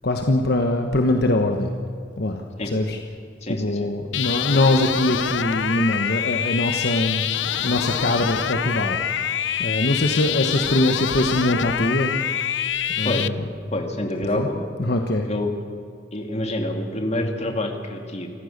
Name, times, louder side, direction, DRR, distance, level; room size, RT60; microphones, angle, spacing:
voice 1, 0.0-1.7 2.2-3.0 3.6-7.3 7.6-9.0 9.6-12.2 12.9-13.4 14.4-14.5 14.8-15.3, left 1 dB, 60° left, 4 dB, 1.3 m, -22 dB
voice 2, 3.4-3.9 13.0-13.3 13.7-14.7 15.2-15.5 16.1-18.3, left 1 dB, 35° left, 3 dB, 2.5 m, -27 dB
sound 1, 4.1-13.3, left 9 dB, 80° left, 0.6 m, -26 dB
26.5 x 15.0 x 6.7 m, 2.4 s
head